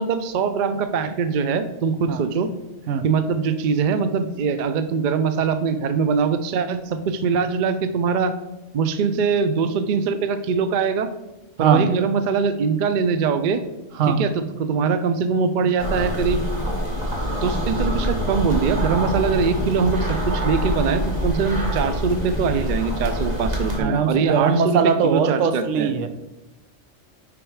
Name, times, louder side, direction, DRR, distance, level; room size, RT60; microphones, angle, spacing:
voice 1, 0.0-2.5 3.0-8.3 8.7-11.1 11.6-13.6 14.1-16.4 17.4-25.9, right 5 dB, 55° right, 10 dB, 0.5 m, -22 dB
sound 1, 15.8-23.8, equal, 35° right, 1.6 m, -25 dB
voice 2, 23.8-26.1, right 6 dB, 75° right, 9 dB, 1.0 m, -20 dB
6.1 x 5.2 x 4.7 m, 1.0 s
omnidirectional pair, 1.3 m